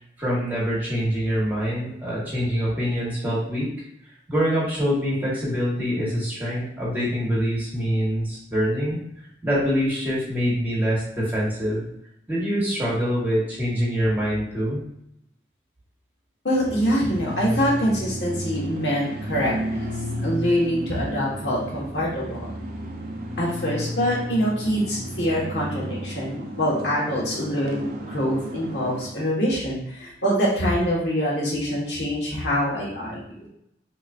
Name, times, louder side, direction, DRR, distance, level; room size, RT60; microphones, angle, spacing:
voice 1, 0.2-3.7 4.3-9.0 9.4-11.9 12.3-14.8, equal, 10° right, -7 dB, 1.3 m, -25 dB
voice 2, 16.4-19.8 20.2-22.5 23.4-33.5, equal, 70° left, -5 dB, 1.4 m, -25 dB
sound 1, 16.6-29.1, equal, 50° right, 0.5 m, -33 dB
4.1 x 3.0 x 2.5 m, 0.76 s
head